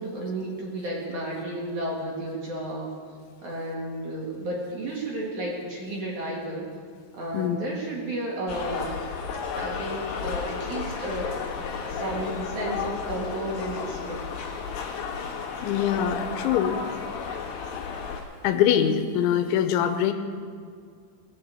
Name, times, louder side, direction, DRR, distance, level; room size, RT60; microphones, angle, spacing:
voice 1, 0.0-3.0 3.4-6.6 7.1-8.9 9.6-11.4 11.9-14.2, right 1 dB, 50° right, -3 dB, 2.8 m, -32 dB
sound 1, 8.5-18.2, left 6 dB, 60° left, 2.9 m, -33 dB
voice 2, 15.6-16.8 18.4-20.1, left 9 dB, 90° left, 8 dB, 3.2 m, -23 dB
19.5 x 6.7 x 7.7 m, 2.2 s
omnidirectional pair, 5.3 m